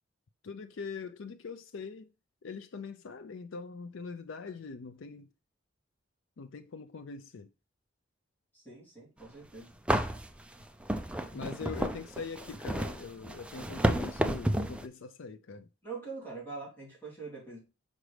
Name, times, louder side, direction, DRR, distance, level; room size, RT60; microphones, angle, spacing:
voice 1, 0.4-2.1 2.4-5.3 6.4-7.5 11.3-15.7, left 4 dB, 75° left, 0.5 m, -42 dB
voice 2, 8.5-9.7 11.3-11.5 15.8-17.6, right 4 dB, 10° left, 3.7 m, -44 dB
sound 1, 9.3-9.4 9.9-14.9, right 1 dB, 5° right, 0.5 m, -31 dB
6.2 x 5.2 x 3.2 m
head